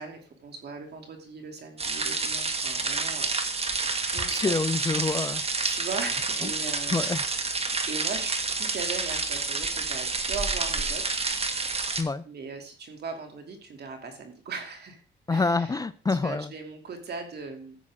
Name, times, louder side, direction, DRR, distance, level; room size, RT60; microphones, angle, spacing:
voice 1, 0.0-3.3 4.1-4.5 5.6-7.1 7.9-11.2 12.2-15.0 15.3-15.8 16.1-17.8, right 4 dB, 55° right, 4 dB, 2.8 m, -39 dB
sound 1, 1.8-12.0, right 4 dB, 30° right, 1.5 m, -29 dB
voice 2, 4.2-5.4 6.4-6.5 6.9-7.2 12.0-12.2 15.3-16.5, left 3 dB, 20° left, 16 dB, 0.5 m, -27 dB
14.0 x 8.6 x 3.7 m, 0.42 s
cardioid pair, 90°, 20 cm